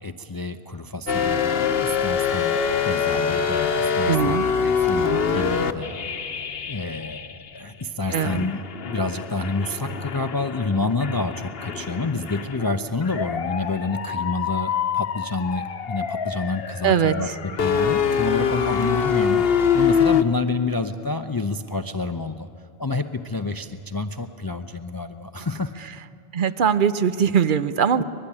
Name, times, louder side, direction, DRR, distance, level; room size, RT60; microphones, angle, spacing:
voice 1, 0.0-6.0 6.3-6.4 6.7-19.5 19.7-22.5 22.8-25.7 28.0-28.1, left 3 dB, 25° left, 8 dB, 0.6 m, -28 dB
sound 1, 1.1-7.6 8.1-20.2, left 6 dB, 70° left, 1.1 m, -25 dB
voice 2, 4.1-4.5 8.1-8.4 16.8-17.3 26.3-28.0, right 7 dB, 55° right, 13 dB, 0.9 m, -21 dB
25.0 x 20.5 x 9.8 m, 2.5 s
omnidirectional pair, 1.0 m